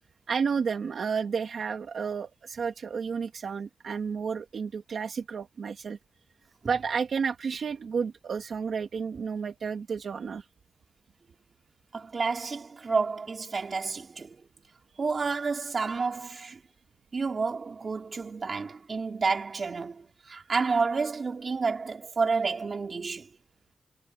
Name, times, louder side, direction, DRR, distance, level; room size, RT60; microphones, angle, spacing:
voice 1, 0.3-6.0 6.7-10.5, right 6 dB, 80° right, 1.8 m, -31 dB
voice 2, 11.9-14.4 15.0-16.6 17.1-23.3, right 4 dB, 55° right, 3.6 m, -30 dB
wide cardioid pair, 85°, 0 cm